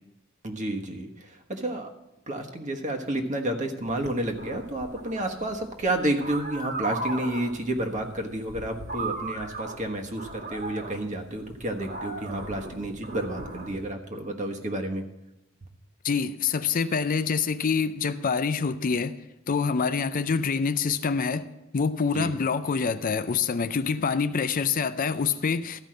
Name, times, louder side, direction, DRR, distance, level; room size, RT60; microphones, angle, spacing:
voice 1, 0.4-1.9 2.3-15.0 22.1-22.3, right 1 dB, 35° right, 3 dB, 1.3 m, -30 dB
sound 1, 3.9-13.9, right 2 dB, 55° right, 2.1 m, -37 dB
voice 2, 16.0-19.1 19.5-21.5 21.7-25.8, left 5 dB, 45° left, 12 dB, 0.4 m, -26 dB
14.0 x 5.4 x 7.6 m, 0.94 s
head